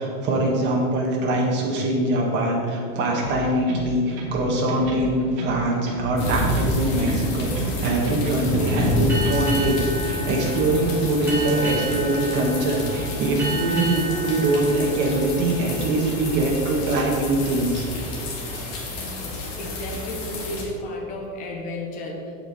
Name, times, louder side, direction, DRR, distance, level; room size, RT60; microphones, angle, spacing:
voice 1, 0.0-18.8, right 2 dB, 30° right, -2 dB, 1.5 m, -23 dB
sound 1, 3.1-4.4 4.7-6.1 6.4-7.8 8.1-9.5, right 2 dB, 55° right, 2.3 m, -33 dB
sound 2, 6.2-20.6, left 1 dB, 45° left, 1.9 m, -28 dB
Boat Water vehicle, 9.1-16.2, right 1 dB, 5° right, 2.3 m, -33 dB
voice 2, 18.9-22.4, left 1 dB, 20° left, -1 dB, 0.9 m, -34 dB
8.0 x 7.9 x 4.1 m, 2.3 s
supercardioid pair, 180°, 39 cm